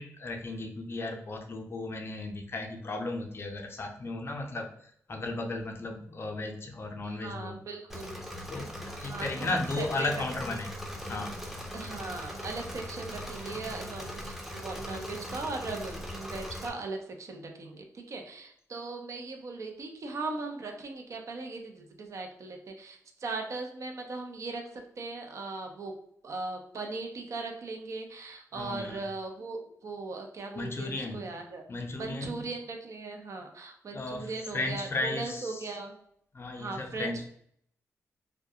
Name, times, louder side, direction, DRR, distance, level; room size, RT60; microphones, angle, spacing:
voice 1, 0.0-4.7 5.1-7.5 8.5-8.7 9.0-10.7 11.1-11.4 28.5-29.0 30.5-31.2 31.7-32.4 33.9-34.3 34.5-35.6 36.3-37.3, left 2 dB, 45° left, 3 dB, 0.5 m, -35 dB
voice 2, 7.0-8.3 9.1-10.2 11.7-25.9 26.2-31.6 32.0-36.0 36.5-37.3, right 3 dB, 60° right, 3 dB, 0.5 m, -39 dB
Engine / Mechanisms, 7.9-16.7, equal, 5° right, 0.5 m, -40 dB
2.3 x 2.2 x 2.8 m, 0.66 s
cardioid pair, 70°, 6 cm